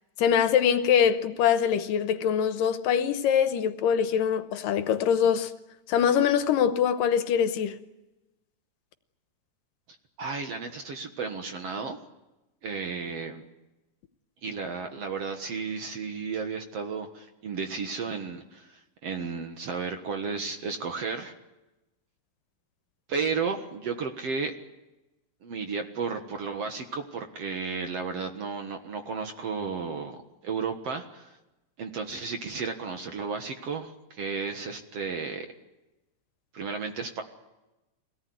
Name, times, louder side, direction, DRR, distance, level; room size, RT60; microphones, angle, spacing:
voice 1, 0.2-5.5 5.9-7.8, left 8 dB, 75° left, 2.5 m, -23 dB
voice 2, 10.2-12.0 12.6-13.4 14.4-21.3 23.1-24.6 25.4-30.2 30.4-31.4 31.8-35.5 36.5-37.2, right 5 dB, 55° right, 2.1 m, -33 dB
25.0 x 18.0 x 9.6 m
omnidirectional pair, 4.1 m